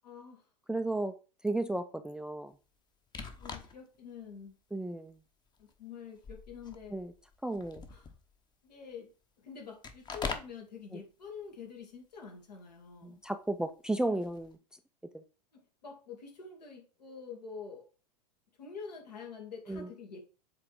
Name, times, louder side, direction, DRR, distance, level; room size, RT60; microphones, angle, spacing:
voice 1, 0.0-0.5 3.4-4.5 5.6-7.0 7.9-8.1 8.6-9.1 9.4-13.2 15.5-17.9 18.6-20.2, left 6 dB, 75° left, 2.3 m, -47 dB
voice 2, 0.7-1.1 1.4-2.5 4.7-5.2 6.9-7.1 7.4-7.8 10.9-11.0 13.0-14.6 15.1-15.2 19.7-19.9, right 2 dB, 5° right, 0.4 m, -34 dB
sound 1, 3.1-4.0 4.5-4.6 5.5-5.8 6.1-8.4 9.8-10.6 14.2-14.6, left 5 dB, 20° left, 1.0 m, -42 dB
7.5 x 3.5 x 4.7 m
figure-of-eight pair, 95°, 21 cm